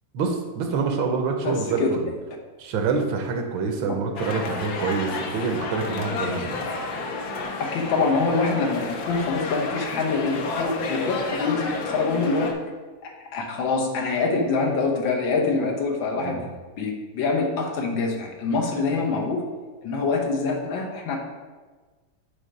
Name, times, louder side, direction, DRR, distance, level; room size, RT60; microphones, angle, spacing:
voice 1, 0.1-2.0 2.6-6.6 16.1-16.3, right 5 dB, 80° right, 4 dB, 1.6 m, -26 dB
voice 2, 1.4-1.9 3.8-4.0 7.6-12.5 13.0-16.4 16.8-19.5 19.8-21.2, left 4 dB, 80° left, 1 dB, 1.8 m, -25 dB
sound 1, 4.2-12.5, left 3 dB, 60° left, 1.1 m, -31 dB
8.2 x 3.5 x 5.2 m, 1.3 s
omnidirectional pair, 2.1 m